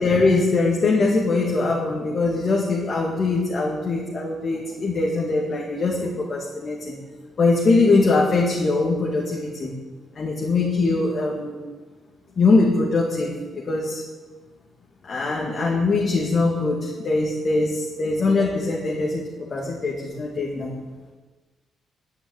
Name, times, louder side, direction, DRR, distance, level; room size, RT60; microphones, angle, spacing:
voice 1, 0.0-7.0 7.4-9.7 10.2-11.6 12.4-14.0 15.0-19.2 19.5-20.7, left 3 dB, 35° left, -2 dB, 2.0 m, -22 dB
9.7 x 9.7 x 9.1 m, 1.3 s
cardioid pair, 170°, 0 cm